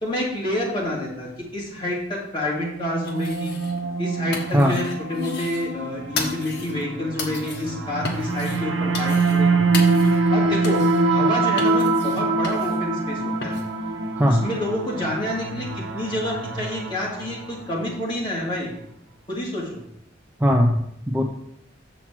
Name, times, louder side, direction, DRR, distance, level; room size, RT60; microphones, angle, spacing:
voice 1, 0.0-3.6 4.0-9.9 10.3-10.8 11.1-13.6 14.3-18.7 19.3-19.8, left 1 dB, 25° left, -5 dB, 2.3 m, -28 dB
sound 1, 2.5-17.8, right 3 dB, 80° right, 0.9 m, -24 dB
sound 2, 3.0-3.9 4.1-5.7 6.2-6.8 7.2-7.7 8.0-8.6 8.9-9.5 9.7-10.3 10.6-11.0 11.6-12.8 13.4-13.7, left 3 dB, 60° left, 1.3 m, -34 dB
voice 2, 20.4-21.3, equal, 10° right, 1 dB, 0.5 m, -19 dB
7.1 x 6.1 x 4.3 m, 0.73 s
head